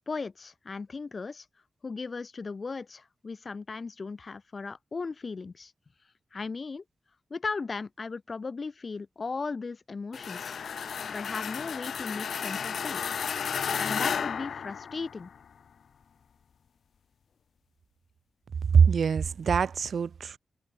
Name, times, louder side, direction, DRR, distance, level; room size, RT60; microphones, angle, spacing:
voice 1, 0.1-1.5 1.8-5.7 6.3-6.8 7.3-10.5 11.1-13.0 13.8-15.3, left 4 dB, 45° left, 3.0 m, -37 dB
sound 1, 10.1-15.4, left 7 dB, 85° left, 1.7 m, -33 dB
voice 2, 18.7-20.4, right 6 dB, 75° right, 0.9 m, -23 dB
wide cardioid pair, 105°, 0 cm